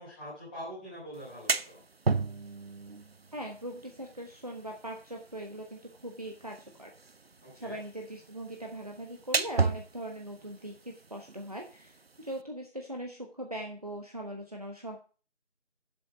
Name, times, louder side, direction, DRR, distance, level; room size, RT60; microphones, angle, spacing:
voice 1, 0.0-1.8 7.4-7.8, equal, 10° left, -10 dB, 3.7 m, -44 dB
sound 1, 1.1-12.4, right 4 dB, 60° right, 0.6 m, -36 dB
voice 2, 3.3-6.9 7.5-15.0, right 1 dB, 35° right, 1 dB, 1.1 m, -40 dB
7.7 x 7.5 x 7.1 m, 0.38 s
figure-of-eight pair, 170°, 35 cm